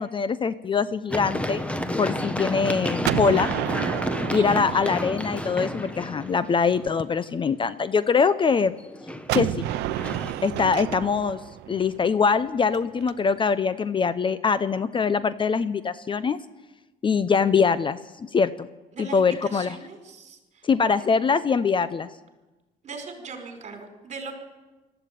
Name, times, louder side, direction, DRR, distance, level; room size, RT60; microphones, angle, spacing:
voice 1, 0.0-1.6 2.0-3.5 4.3-8.8 9.3-9.7 10.4-11.4 11.7-16.4 17.0-18.7 19.0-19.8 20.6-22.1, left 5 dB, 30° left, 15 dB, 0.7 m, -23 dB
Run, 1.1-6.9 8.8-10.3, left 1 dB, 5° left, 1.4 m, -30 dB
Gunshot gunfire, 3.0-5.9 9.3-13.1, right 14 dB, 85° right, 0.7 m, -31 dB
voice 2, 4.3-5.0 18.9-20.7 22.8-24.3, right 4 dB, 40° right, 4 dB, 5.3 m, -39 dB
20.5 x 14.0 x 9.2 m, 1.1 s
cardioid pair, 110°, 17 cm